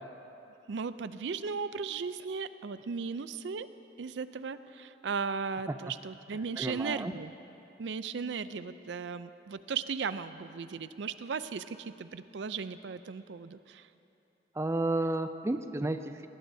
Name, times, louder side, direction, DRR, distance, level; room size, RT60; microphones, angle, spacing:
voice 1, 0.7-3.7 4.0-7.3 7.8-13.9, right 5 dB, 85° right, 13 dB, 0.5 m, -36 dB
voice 2, 6.6-7.1 14.6-16.3, right 2 dB, 15° right, 9 dB, 0.4 m, -32 dB
19.0 x 18.5 x 2.7 m, 3.0 s
head